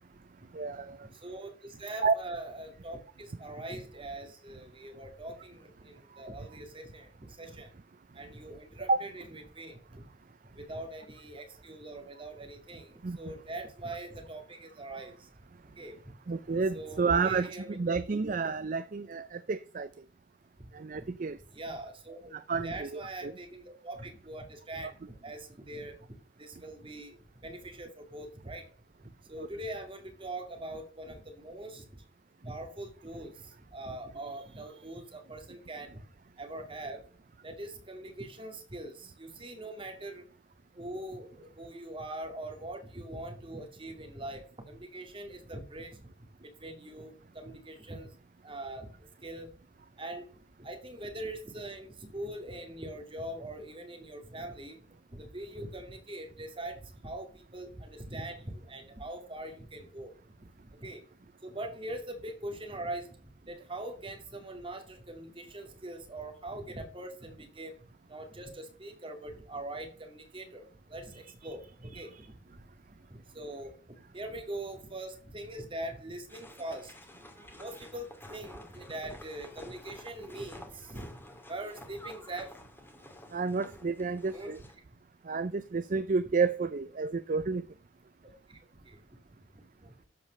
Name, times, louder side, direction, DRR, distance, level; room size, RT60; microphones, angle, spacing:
voice 1, 0.5-1.0 2.0-2.1 8.9-9.1 13.0-13.2 16.3-19.9 20.7-21.4 22.3-23.3 29.4-29.5 71.9-72.2 83.3-84.6 85.3-87.6, right 4 dB, 45° right, 14 dB, 0.5 m, -30 dB
voice 2, 1.2-1.5 1.8-7.1 7.4-7.7 8.2-10.0 10.6-12.9 13.2-15.1 15.8-16.0 16.7-17.7 21.6-24.9 25.2-25.9 26.4-27.2 27.4-28.6 29.3-31.8 32.4-33.3 33.7-36.0 36.4-37.0 37.4-38.9 39.2-40.2 40.8-44.4 44.7-45.9 46.6-48.1 48.4-48.9 49.2-49.5 50.0-50.2 50.6-54.8 55.1-56.8 57.0-60.1 60.8-61.0 61.4-63.0 63.5-67.7 68.1-72.1 73.4-73.7 74.1-76.9 77.6-81.1 81.5-82.5 84.3-84.5 88.5-88.6 88.9-89.0, right 1 dB, 30° right, 4 dB, 2.3 m, -42 dB
sound 1, 76.3-84.7, left 1 dB, 10° left, 2.1 m, -51 dB
13.0 x 4.9 x 6.4 m, 0.42 s
head